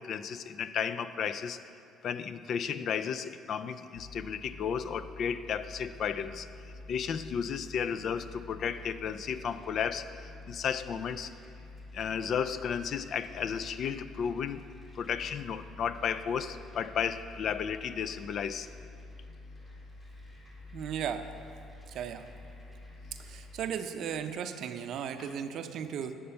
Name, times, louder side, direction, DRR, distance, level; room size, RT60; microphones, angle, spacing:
voice 1, 0.0-1.6 2.0-11.3 11.9-14.7 14.9-18.7 25.2-25.3, left 7 dB, 55° left, 13 dB, 0.3 m, -33 dB
sound 1, 3.9-23.6, left 2 dB, 25° left, 2.0 m, -49 dB
voice 2, 20.7-21.3 21.9-22.3 23.2-26.1, right 8 dB, 65° right, 9 dB, 0.5 m, -36 dB
8.5 x 5.4 x 5.6 m, 2.7 s
supercardioid pair, 80°, 0 cm